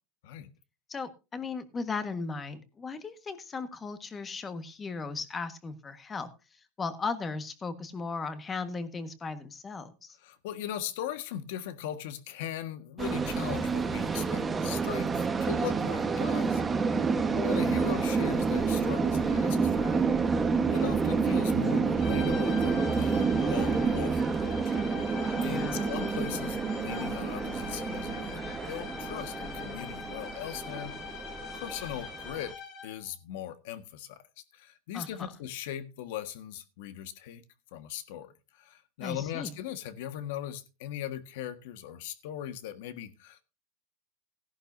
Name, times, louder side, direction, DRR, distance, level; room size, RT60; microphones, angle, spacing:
voice 1, 0.9-6.3 6.8-10.2 25.4-25.8 34.9-35.1 39.0-39.5, left 4 dB, 20° left, 1.5 m, -36 dB
voice 2, 10.2-16.6 16.9-20.3 20.7-24.5 25.4-31.1 31.5-32.5 32.8-37.4 37.7-43.4, left 11 dB, 70° left, 1.6 m, -39 dB
sound 1, 13.0-32.5, right 5 dB, 15° right, 1.2 m, -29 dB
sound 2, 22.0-33.1, left 7 dB, 45° left, 4.0 m, -43 dB
17.0 x 11.0 x 2.7 m
supercardioid pair, 145°, 0 cm